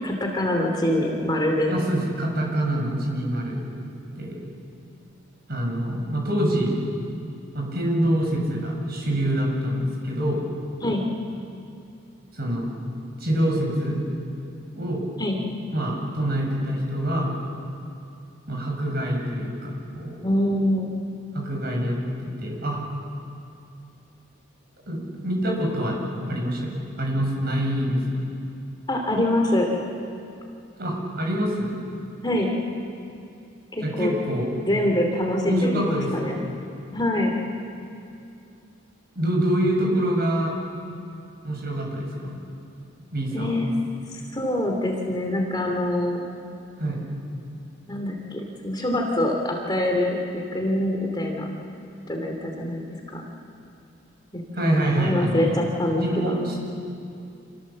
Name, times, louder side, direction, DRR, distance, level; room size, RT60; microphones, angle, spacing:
voice 1, 0.0-1.7 10.8-11.0 15.2-15.4 20.2-21.0 28.9-29.7 32.2-32.5 33.7-34.1 34.7-36.4 36.9-37.3 43.3-43.7 44.1-46.2 47.9-51.5 52.1-52.8 53.1-53.2 54.3-56.4, left 1 dB, 20° left, 1 dB, 2.6 m, -25 dB
voice 2, 1.7-3.7 4.2-4.4 5.5-6.8 7.5-10.4 12.3-12.7 13.2-14.0 14.8-15.0 15.7-17.3 18.5-20.2 21.3-22.8 24.9-26.0 26.3-26.7 27.0-28.2 30.8-31.8 33.8-34.5 35.5-36.4 39.2-40.5 41.4-42.4 43.1-43.6 46.8-47.0 54.5-55.6 56.0-56.6, right 1 dB, 45° right, -1 dB, 7.0 m, -25 dB
28.5 x 28.0 x 7.5 m, 2.6 s
head